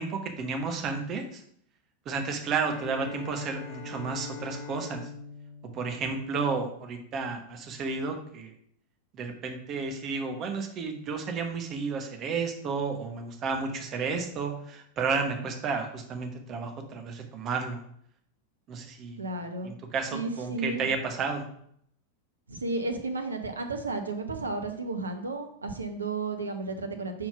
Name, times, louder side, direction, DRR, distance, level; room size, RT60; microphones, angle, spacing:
voice 1, 0.0-1.4 2.0-5.1 5.7-8.5 9.1-17.8 18.7-19.2 19.6-21.5, right 4 dB, 30° right, 4 dB, 1.0 m, -32 dB
Bowed string instrument, 2.6-6.9, left 3 dB, 50° left, 1.2 m, -42 dB
voice 2, 19.2-19.7 20.1-20.9 22.5-27.3, right 3 dB, 75° right, 5 dB, 0.8 m, -33 dB
4.5 x 3.8 x 5.6 m, 0.67 s
figure-of-eight pair, 90°, 0 cm